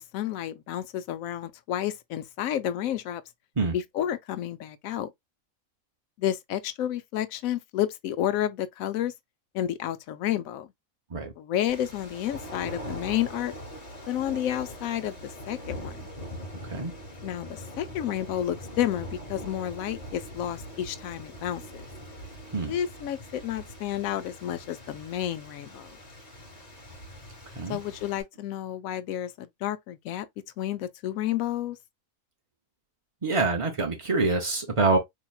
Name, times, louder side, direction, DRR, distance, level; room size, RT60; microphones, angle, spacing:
voice 1, 0.0-3.2 3.7-5.1 6.2-9.1 9.5-10.7 11.4-13.5 14.1-16.0 17.2-21.6 22.7-26.0 27.7-30.3 30.6-31.8, left 11 dB, 75° left, 1.0 m, -31 dB
sound 1, 11.7-28.2, equal, 30° left, 1.2 m, -42 dB
voice 2, 33.2-35.0, right 3 dB, 60° right, 0.3 m, -25 dB
4.3 x 2.9 x 2.3 m
omnidirectional pair, 1.5 m